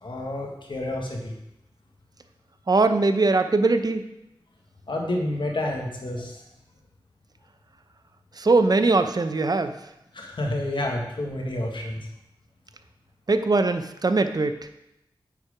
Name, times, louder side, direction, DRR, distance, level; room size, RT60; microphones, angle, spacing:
voice 1, 0.0-1.3 4.9-6.4 10.1-12.0, left 1 dB, 65° left, 0 dB, 1.7 m, -29 dB
voice 2, 2.7-4.1 8.4-9.8 13.3-14.7, right 3 dB, 50° right, 9 dB, 0.7 m, -21 dB
8.9 x 4.7 x 5.0 m, 0.86 s
cardioid pair, 45°, 9 cm